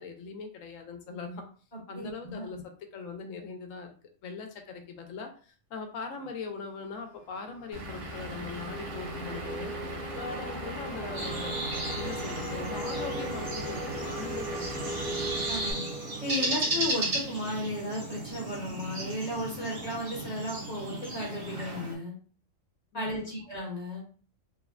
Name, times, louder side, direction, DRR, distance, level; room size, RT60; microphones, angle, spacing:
voice 1, 0.0-1.5 1.9-2.6 2.9-3.9 4.2-9.7 10.2-11.6 12.0-15.2 22.9-23.3, left 4 dB, 85° left, 5 dB, 1.0 m, -40 dB
voice 2, 1.7-2.6 15.5-15.9 16.2-22.1 22.9-24.0, left 1 dB, 40° left, -3 dB, 0.7 m, -35 dB
sound 1, 7.1-17.5, right 1 dB, 10° left, 0.4 m, -39 dB
Vehicle / Engine, 7.7-15.7, right 1 dB, 70° right, 1.1 m, -39 dB
sound 2, 11.2-22.0, right 2 dB, 85° right, 1.4 m, -35 dB
3.2 x 2.1 x 2.4 m, 0.40 s
omnidirectional pair, 1.3 m